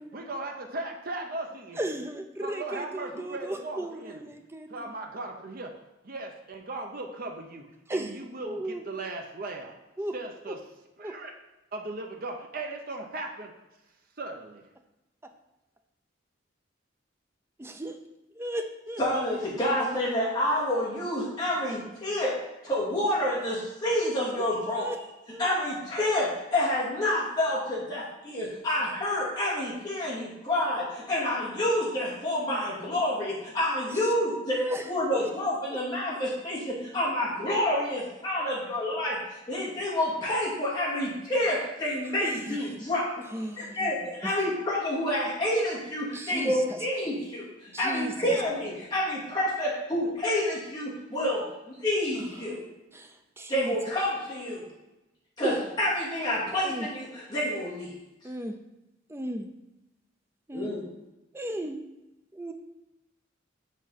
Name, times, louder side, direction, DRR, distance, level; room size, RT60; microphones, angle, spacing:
voice 1, 0.1-1.8 2.4-4.2 4.7-5.7 6.0-9.8 10.1-10.6 11.0-11.3 11.7-13.5 14.2-14.6, right 2 dB, 50° right, 2 dB, 0.7 m, -37 dB
voice 2, 1.8-4.9 7.9-8.2 8.4-8.8 10.0-10.1 10.5-10.6 11.0-11.1 17.6-18.0 18.3-19.0 24.4-25.0 25.3-25.5 33.9-34.1 34.5-35.3 42.2-42.6 43.3-43.9 44.2-44.4 46.1-46.9 47.7-48.4 52.1-52.3 52.9-53.8 55.4-55.6 56.6-56.9 58.2-58.5 59.1-59.5 60.5-60.7 61.3-61.8 62.3-62.5, right 1 dB, 15° right, 5 dB, 0.5 m, -35 dB
voice 3, 19.0-22.4 22.6-24.9 25.4-34.6 34.9-39.2 39.5-43.1 43.6-52.6 53.5-54.6 55.4-57.9 60.5-60.8, left 1 dB, 20° left, -8 dB, 2.6 m, -28 dB
7.2 x 4.8 x 4.2 m, 0.97 s
head